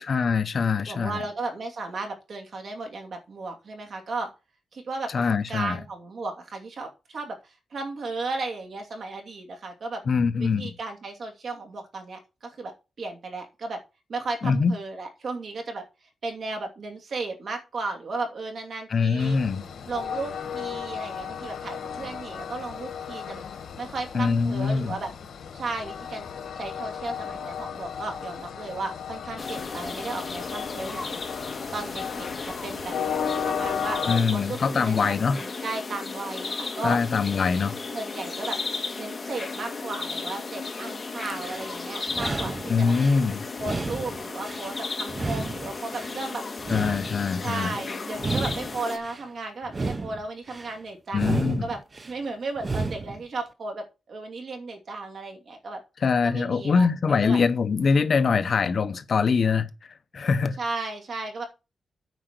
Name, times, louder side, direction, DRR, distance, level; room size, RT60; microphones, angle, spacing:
voice 1, 0.0-1.2 5.1-5.8 10.1-10.7 14.4-14.7 18.9-19.6 24.1-24.9 34.1-35.4 36.8-37.8 42.7-43.4 46.7-47.7 51.1-51.7 56.0-59.7 60.1-60.6, left 5 dB, 45° left, 0.8 m, -23 dB
voice 2, 0.9-4.3 4.7-10.0 10.4-12.7 13.0-13.8 14.1-15.8 16.2-19.4 19.9-23.4 23.8-25.1 25.5-26.3 26.5-31.2 31.7-32.9 33.5-37.0 37.9-38.6 39.0-42.9 43.6-46.4 47.4-51.8 52.0-55.8 56.2-56.9 57.2-57.4 60.6-61.5, right 3 dB, 50° right, 2.7 m, -35 dB
Train, 19.2-34.2, left 7 dB, 80° left, 1.8 m, -35 dB
sound 1, 29.4-49.0, left 4 dB, 25° left, 1.8 m, -35 dB
sound 2, 41.3-41.7 42.1-43.2 43.6-44.7 45.1-46.2 46.6-47.7 48.1-49.2 49.6-50.7 51.1-52.1 52.6-53.2, right 3 dB, 25° right, 0.6 m, -32 dB
9.4 x 5.0 x 6.6 m
wide cardioid pair, 165°, 0 cm